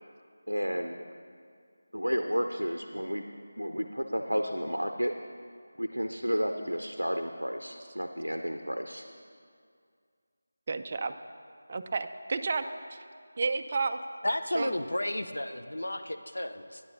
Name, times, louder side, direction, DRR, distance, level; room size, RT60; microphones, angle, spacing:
voice 1, 0.5-1.0 1.9-3.2 3.6-5.1 5.8-9.0, equal, 85° right, 6 dB, 0.5 m, -31 dB
voice 2, 10.7-11.1 11.7-12.6 12.9-13.0 13.4-14.0 14.5-14.7, right 4 dB, 30° right, 8 dB, 0.3 m, -31 dB
voice 3, 14.2-16.8, left 1 dB, 65° left, 8 dB, 0.5 m, -32 dB
9.4 x 6.7 x 5.5 m, 2.2 s
figure-of-eight pair, 165°, 0 cm